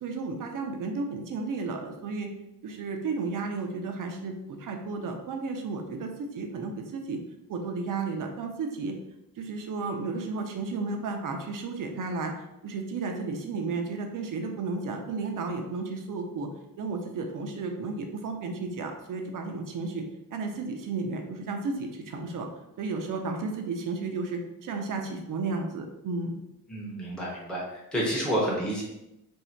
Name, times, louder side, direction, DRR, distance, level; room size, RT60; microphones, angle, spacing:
voice 1, 0.0-2.3 2.6-7.2 7.5-8.9 9.4-16.5 16.8-20.0 20.3-22.5 22.8-26.4, right 3 dB, 65° right, 4 dB, 0.7 m, -33 dB
voice 2, 26.7-28.8, right 1 dB, ahead, -5 dB, 0.8 m, -29 dB
3.2 x 2.7 x 4.4 m, 0.88 s
wide cardioid pair, 180°, 35 cm